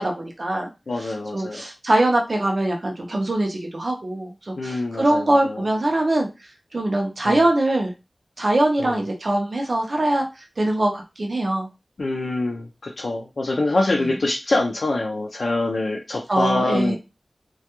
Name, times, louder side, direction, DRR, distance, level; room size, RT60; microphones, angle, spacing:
voice 1, 0.0-0.7 1.3-6.3 6.7-7.9 8.4-10.2 10.6-11.7 16.3-17.0, right 1 dB, 60° right, 1 dB, 0.6 m, -22 dB
voice 2, 0.9-1.6 4.6-5.7 7.2-7.5 8.8-9.0 12.0-17.0, left 2 dB, 85° left, 0 dB, 0.4 m, -25 dB
2.2 x 2.2 x 2.9 m, 0.27 s
wide cardioid pair, 55°, 0 cm